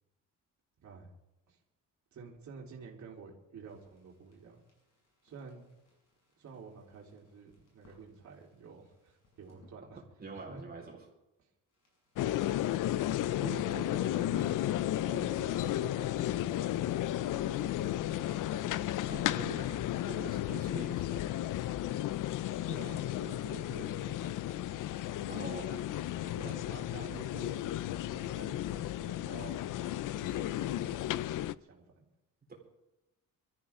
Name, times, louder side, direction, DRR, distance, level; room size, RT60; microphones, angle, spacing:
voice 1, 0.8-1.1 1.5-1.6 2.1-4.6 5.2-5.6 6.4-10.0 10.3-10.6 13.4-16.8 17.2-18.9 19.2-19.4 22.7-24.1 24.4-24.8 25.2-25.5 26.2-27.6 28.1-29.6 30.1-32.1, right 5 dB, 55° right, -2 dB, 3.7 m, -50 dB
sound 1, 3.6-9.7 11.7-19.9, left 2 dB, 50° left, 7.0 m, -63 dB
voice 2, 10.2-11.0 19.1-21.3 25.2-25.8 26.4-26.8 32.5-32.6, right 3 dB, 25° right, 0 dB, 4.1 m, -45 dB
sound 2, 12.2-31.5, left 13 dB, 65° left, 0.5 m, -33 dB
sound 3, 14.4-14.9 15.3-15.9 16.3-16.9 17.3-17.9 18.3-18.9 19.4-20.0 20.4-21.0 21.4-22.0, right 3 dB, 10° right, 2.1 m, -61 dB
24.0 x 13.5 x 3.7 m, 0.92 s
wide cardioid pair, 170°, 34 cm